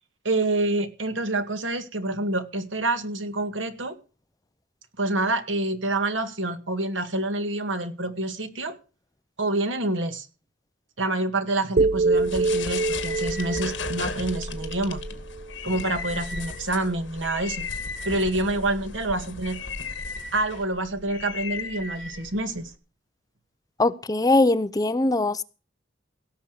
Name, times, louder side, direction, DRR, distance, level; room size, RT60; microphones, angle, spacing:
voice 1, 0.2-4.0 5.0-8.8 9.4-10.3 11.0-15.0 15.6-17.7 18.1-19.6 20.3-22.6, right 2 dB, 85° right, 2.0 m, -27 dB
sound 1, 11.8-15.9, right 3 dB, 55° right, 0.7 m, -26 dB
sound 2, 12.1-22.7, left 4 dB, 70° left, 2.1 m, -35 dB
voice 2, 23.8-25.4, left 2 dB, 20° left, 0.6 m, -21 dB
17.0 x 6.9 x 6.7 m
head